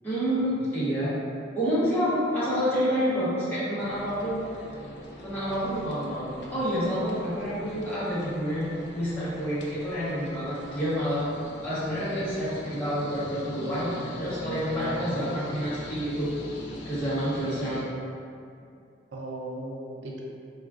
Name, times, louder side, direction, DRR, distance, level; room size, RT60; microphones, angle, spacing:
voice 1, 0.0-1.1 1.5-4.4 5.2-8.7 8.9-11.2 11.6-16.3 16.9-17.8, equal, 10° left, -12 dB, 0.8 m, -28 dB
sound 1, 3.8-17.8, left 1 dB, 65° left, 0.4 m, -41 dB
voice 2, 14.8-15.5 19.1-20.2, right 1 dB, 75° right, -2 dB, 0.5 m, -37 dB
3.6 x 2.3 x 2.4 m, 2.4 s
head